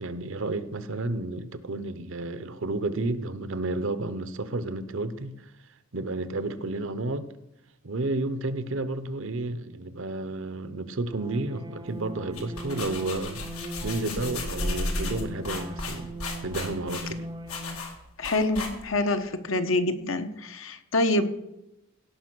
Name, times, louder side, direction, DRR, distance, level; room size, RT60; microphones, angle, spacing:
voice 1, 0.0-5.3 5.9-7.3 7.8-13.4 13.8-16.1 16.4-17.3, right 2 dB, 60° right, 0.8 m, -31 dB
sound 1, 11.1-17.9, right 1 dB, 20° right, 0.6 m, -40 dB
sound 2, 12.2-19.1, left 2 dB, 85° left, 2.2 m, -34 dB
voice 2, 18.2-21.3, left 2 dB, 65° left, 1.0 m, -26 dB
17.0 x 5.7 x 6.1 m
head